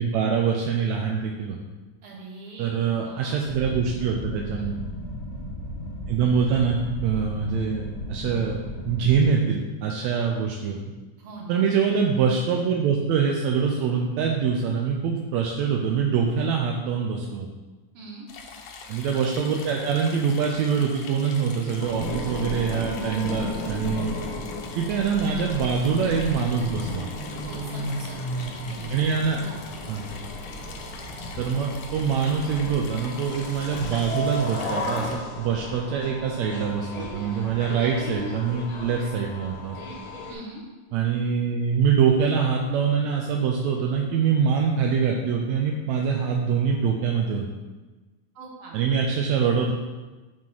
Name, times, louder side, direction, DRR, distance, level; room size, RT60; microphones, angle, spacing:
voice 1, 0.0-1.6 2.6-4.8 6.1-10.8 11.5-17.5 18.9-24.1 24.8-27.1 28.9-29.4 29.9-30.0 31.4-39.8 40.9-47.5 48.7-49.7, right 6 dB, 80° right, 0 dB, 1.7 m, -24 dB
voice 2, 2.0-3.8 4.4-4.7 11.2-11.6 17.9-18.3 27.4-28.9 29.4-29.6 40.3-40.6 48.3-48.8, right 2 dB, 50° right, -3 dB, 2.2 m, -42 dB
sound 1, 3.5-9.2, equal, 35° left, 1.0 m, -35 dB
sound 2, 18.3-35.2, left 5 dB, 75° left, 2.2 m, -43 dB
sound 3, 21.8-40.3, left 1 dB, 60° left, 1.6 m, -34 dB
7.5 x 3.7 x 6.1 m, 1.2 s
omnidirectional pair, 3.6 m